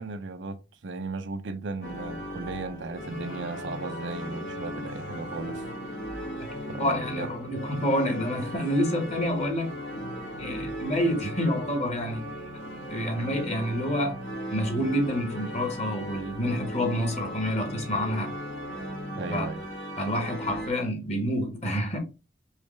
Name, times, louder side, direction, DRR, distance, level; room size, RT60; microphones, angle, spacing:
voice 1, 0.0-5.6 6.7-7.5 19.2-19.6, right 3 dB, 85° right, 0.6 m, -36 dB
sound 1, 1.8-20.7, equal, 75° left, 1.8 m, -37 dB
voice 2, 6.4-9.7 10.4-12.3 12.9-14.2 14.5-18.3 19.3-19.4 20.0-22.0, equal, 40° left, 1.4 m, -28 dB
4.9 x 3.2 x 3.2 m
head